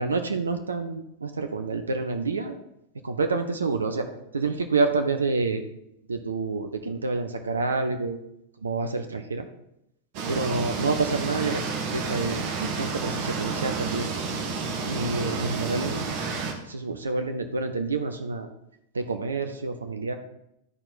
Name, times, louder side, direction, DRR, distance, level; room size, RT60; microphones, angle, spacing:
voice 1, 0.0-2.5 3.0-4.1 4.3-5.6 6.1-8.2 8.6-9.5 10.3-11.6 11.9-14.1 14.8-16.1 16.7-18.5 18.9-20.1, right 3 dB, 75° right, 7 dB, 0.7 m, -28 dB
sound 1, 10.1-16.5, right 4 dB, 45° right, 1.4 m, -30 dB
12.5 x 4.4 x 4.1 m, 0.81 s
figure-of-eight pair, 90°, 0 cm